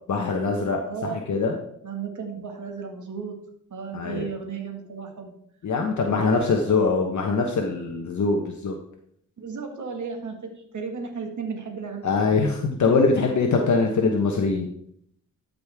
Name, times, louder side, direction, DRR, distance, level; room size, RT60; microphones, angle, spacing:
voice 1, 0.1-1.6 3.9-4.3 5.6-8.7 12.0-14.7, left 4 dB, 60° left, 2 dB, 1.1 m, -23 dB
voice 2, 0.8-1.3 1.8-3.4 3.7-5.3 6.1-6.7 9.4-12.4 13.9-14.0, right 5 dB, 65° right, 4 dB, 1.9 m, -34 dB
12.5 x 5.3 x 3.6 m, 0.68 s
cardioid pair, 80°, 33 cm